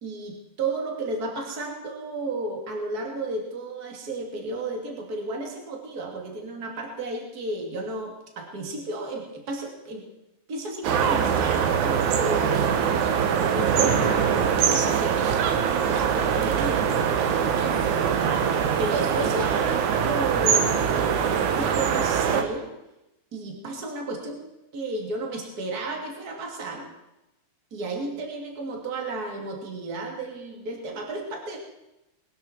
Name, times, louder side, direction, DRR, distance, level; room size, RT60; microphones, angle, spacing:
voice 1, 0.0-10.0 10.5-16.9 18.1-22.7 23.3-24.4 24.7-26.9 27.7-31.6, right 2 dB, 30° right, 0 dB, 2.7 m, -33 dB
sound 1, 10.8-22.4, right 7 dB, 65° right, 2.3 m, -23 dB
21.0 x 12.0 x 4.5 m, 0.92 s
omnidirectional pair, 4.0 m